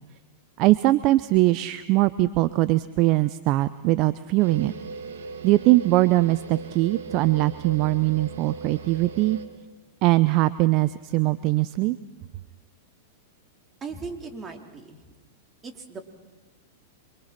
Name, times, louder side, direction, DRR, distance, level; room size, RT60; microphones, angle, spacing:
voice 1, 0.6-4.7 5.4-9.4 10.0-12.0, right 18 dB, 45° right, 15 dB, 0.7 m, -21 dB
sound 1, 4.4-9.4, right 4 dB, 75° right, 2.6 m, -38 dB
voice 2, 13.8-15.0 15.6-16.0, right 4 dB, 25° right, 4 dB, 3.5 m, -37 dB
27.0 x 24.0 x 6.0 m, 1.2 s
hypercardioid pair, 110°, 0 cm